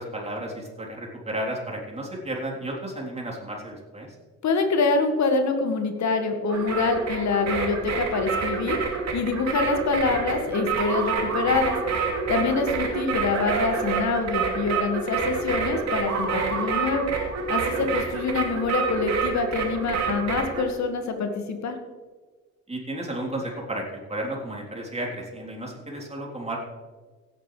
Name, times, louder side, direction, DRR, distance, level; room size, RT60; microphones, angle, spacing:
voice 1, 0.0-4.1 12.4-12.6 17.8-17.9 22.7-26.6, right 1 dB, 15° right, -2 dB, 3.6 m, -33 dB
voice 2, 4.4-8.8 9.1-11.8 12.3-17.1 17.5-21.8, left 4 dB, 50° left, 6 dB, 1.9 m, -25 dB
sound 1, 6.5-20.6, right 5 dB, 45° right, 2.8 m, -28 dB
16.5 x 9.1 x 3.3 m, 1.4 s
hypercardioid pair, 50°, 37 cm